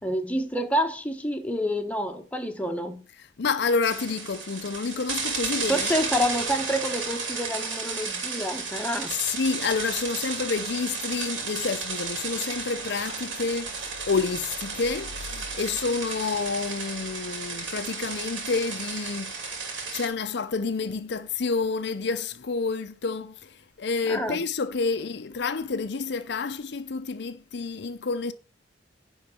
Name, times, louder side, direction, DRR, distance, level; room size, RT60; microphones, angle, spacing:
voice 1, 0.0-3.0 5.7-9.1 24.1-24.4, equal, 10° left, 1.0 m, -28 dB
voice 2, 3.2-6.0 9.1-19.4 19.9-28.3, left 4 dB, 65° left, 0.6 m, -29 dB
sound 1, 3.8-20.1, right 4 dB, 90° right, 2.6 m, -33 dB
10.5 x 3.9 x 7.0 m
head